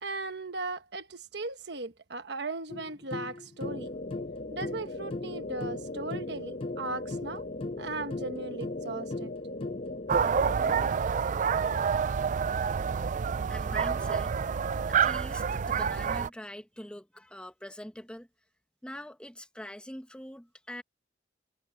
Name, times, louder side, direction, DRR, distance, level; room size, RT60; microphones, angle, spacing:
voice 1, 0.0-3.9 4.5-7.4 7.8-9.3 10.7-11.0, right 3 dB, 65° right, 1.3 m, -37 dB
sound 1, 2.7-10.2, left 2 dB, 30° left, 0.4 m, -40 dB
sound 2, 3.6-10.9, left 2 dB, 50° left, 1.3 m, -39 dB
sound 3, 10.1-16.3, right 6 dB, 45° right, 0.4 m, -28 dB
voice 2, 13.5-14.4 14.9-18.3 18.8-20.8, left 1 dB, 5° left, 1.3 m, -43 dB
head